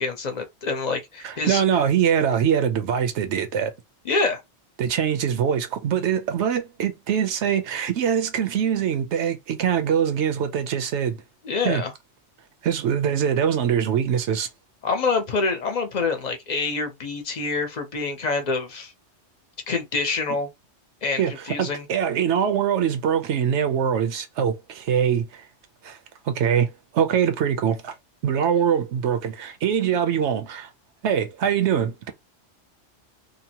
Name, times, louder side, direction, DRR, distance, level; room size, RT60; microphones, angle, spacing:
voice 1, 0.0-1.6 4.0-4.4 11.4-11.9 14.8-18.9 19.7-20.5 21.0-21.9, left 4 dB, 45° left, 0.7 m, -26 dB
voice 2, 1.2-3.7 4.8-11.2 11.6-11.8 12.6-14.5 21.2-21.3 21.6-25.4 25.8-26.0 26.3-27.9 28.2-30.7 31.0-32.1, right 8 dB, 80° right, 0.9 m, -23 dB
2.8 x 2.1 x 2.8 m
omnidirectional pair, 1.2 m